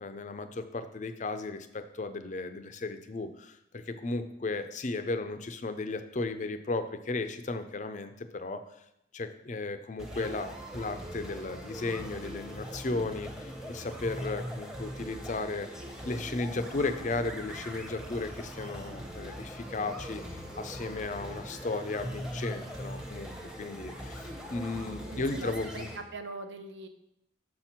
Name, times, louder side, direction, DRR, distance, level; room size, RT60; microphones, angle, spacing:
voice 1, 0.0-8.6 9.1-25.9, left 3 dB, 40° left, 10 dB, 0.5 m, -35 dB
sound 1, 10.0-26.0, equal, 5° right, 0.8 m, -41 dB
voice 2, 25.1-26.9, right 3 dB, 75° right, 7 dB, 0.8 m, -42 dB
6.3 x 4.4 x 5.8 m, 0.80 s
head